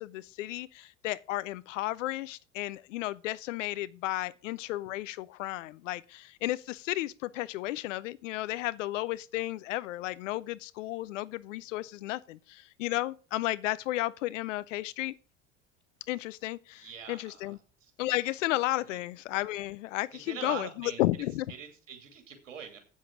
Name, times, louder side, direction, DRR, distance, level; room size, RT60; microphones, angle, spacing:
voice 1, 0.0-15.1 16.1-17.6 18.0-21.5, left 16 dB, 75° left, 0.7 m, -33 dB
voice 2, 16.7-17.9 18.7-19.0 20.1-21.0 21.5-22.8, right 7 dB, 85° right, 2.6 m, -43 dB
8.5 x 7.4 x 6.0 m
hypercardioid pair, 70°, 38 cm